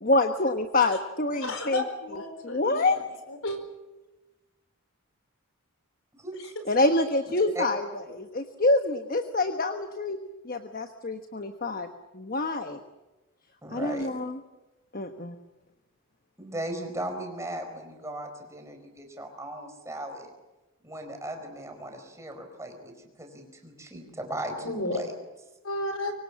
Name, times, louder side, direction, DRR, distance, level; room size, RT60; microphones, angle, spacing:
voice 1, 0.0-1.8 2.4-3.0 6.7-10.2 10.4-11.9 12.1-12.8 13.7-14.4 14.9-15.3, left 2 dB, 40° left, 7 dB, 1.2 m, -26 dB
voice 2, 1.4-2.8 3.3-3.6 24.6-25.0 25.6-26.1, left 2 dB, 65° left, 7 dB, 4.7 m, -32 dB
voice 3, 6.2-6.5 7.5-7.6 13.6-14.1 16.4-20.3 20.8-22.9 23.2-25.1, right 1 dB, 15° right, 4 dB, 4.6 m, -37 dB
25.0 x 24.5 x 7.4 m, 1.1 s
head